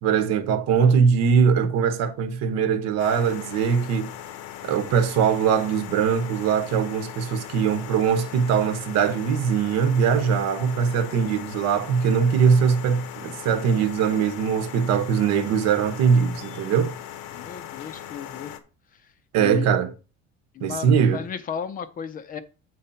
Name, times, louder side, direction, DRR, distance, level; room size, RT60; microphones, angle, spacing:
voice 1, 0.0-4.1 4.6-16.9 19.3-19.9 20.6-21.2, right 6 dB, 60° right, 1.0 m, -21 dB
sound 1, 3.0-18.6, left 11 dB, 85° left, 1.0 m, -39 dB
voice 2, 17.3-18.5 18.9-19.1 19.4-19.7 20.5-22.4, left 7 dB, 30° left, 0.5 m, -34 dB
8.1 x 4.1 x 5.7 m
cardioid pair, 165°, 29 cm